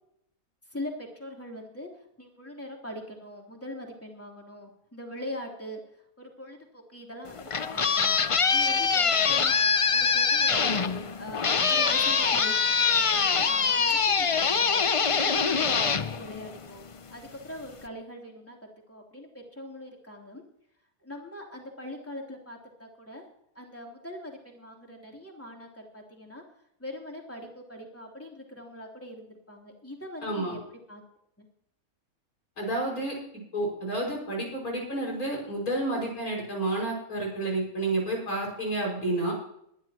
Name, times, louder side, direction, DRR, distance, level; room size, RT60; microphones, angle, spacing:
voice 1, 0.7-9.6 9.9-10.8 11.2-18.6 18.9-20.4 21.0-23.2 23.5-26.4 26.8-30.6 30.9-31.0 31.4-31.5, left 1 dB, 10° left, 0 dB, 3.2 m, -42 dB
sound 1, 7.3-16.9, left 5 dB, 50° left, 0.4 m, -24 dB
voice 2, 30.2-30.5 32.6-33.2 33.5-39.3, right 2 dB, 80° left, -2 dB, 6.3 m, -30 dB
21.5 x 11.5 x 3.0 m, 0.74 s
omnidirectional pair, 1.5 m